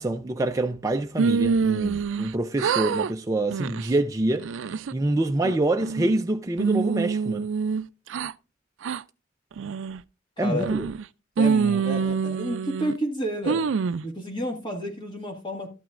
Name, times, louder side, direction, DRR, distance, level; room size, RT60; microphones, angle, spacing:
voice 1, 0.0-7.5 10.4-10.9, right 2 dB, 15° right, 0.4 m, -26 dB
sound 1, 1.2-2.3 2.6-3.1 3.5-3.9 4.4-4.9 5.4-6.2 6.6-8.3 8.8-9.0 9.6-10.0 10.6-11.0 11.4-13.0 13.5-14.0, right 5 dB, 75° right, 0.4 m, -25 dB
voice 2, 10.4-10.7 11.4-13.7 14.0-15.7, equal, 25° left, 1.7 m, -30 dB
12.5 x 9.1 x 2.5 m
head